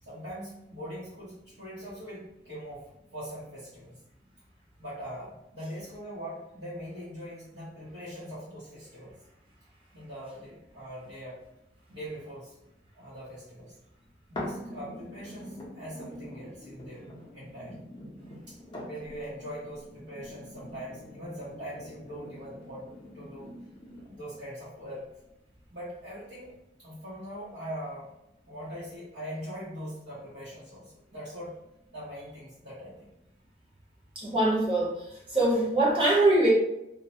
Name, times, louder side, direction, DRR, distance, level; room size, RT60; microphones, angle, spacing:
voice 1, 0.0-4.0 4.8-9.2 9.9-11.4 11.9-12.5 12.9-13.7 14.3-17.8 18.5-23.5 24.0-25.0 25.7-26.5 26.8-28.1 28.5-31.5 31.9-33.1, equal, 85° right, -10 dB, 0.9 m, -42 dB
sound 1, 14.4-24.3 24.9-25.0, left 1 dB, 30° left, 0.5 m, -44 dB
voice 2, 34.1-36.5, right 1 dB, 30° right, -6 dB, 0.8 m, -23 dB
2.3 x 2.1 x 2.7 m, 0.86 s
head